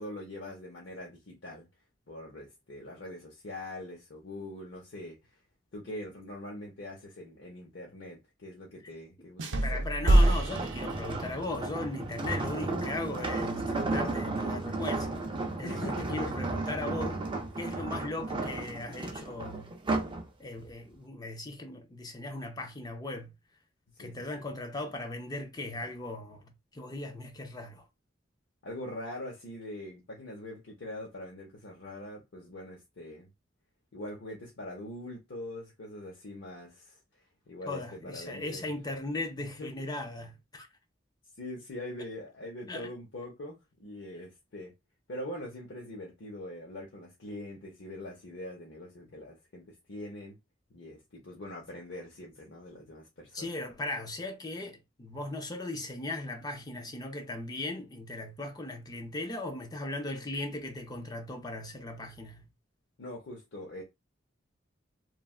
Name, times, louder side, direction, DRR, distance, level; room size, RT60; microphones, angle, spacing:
voice 1, 0.0-1.7 2.1-5.2 5.7-9.8 12.3-12.5 15.6-16.5 24.0-24.5 28.6-33.3 33.9-37.0 37.5-38.6 39.4-39.7 41.4-44.7 45.1-50.4 50.7-53.5 63.0-63.8, left 1 dB, 75° left, 0.8 m, -43 dB
sound 1, 9.4-11.6, right 1 dB, 80° right, 0.6 m, -25 dB
voice 2, 9.6-15.3 15.6-17.3 17.6-19.7 20.4-23.3 24.0-27.9 37.7-40.7 42.7-42.9 44.1-44.2 53.3-62.4, left 2 dB, 20° left, 0.5 m, -38 dB
sound 2, 10.0-20.2 20.7-20.9, right 2 dB, 25° right, 0.5 m, -34 dB
3.1 x 2.3 x 2.4 m
head